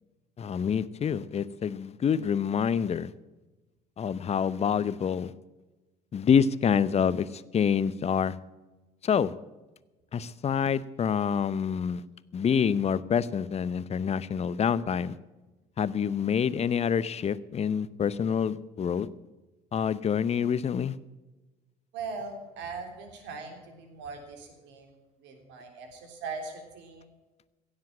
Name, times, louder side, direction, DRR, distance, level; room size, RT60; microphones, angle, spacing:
voice 1, 0.4-3.1 4.0-5.3 6.1-8.4 9.0-9.3 10.1-12.0 12.3-15.2 15.8-19.1 19.7-20.9, left 7 dB, 30° left, 18 dB, 0.7 m, -27 dB
voice 2, 21.9-24.9 25.2-27.1, right 4 dB, 60° right, 4 dB, 3.3 m, -40 dB
16.5 x 7.5 x 8.6 m, 1.1 s
figure-of-eight pair, 55°, 21 cm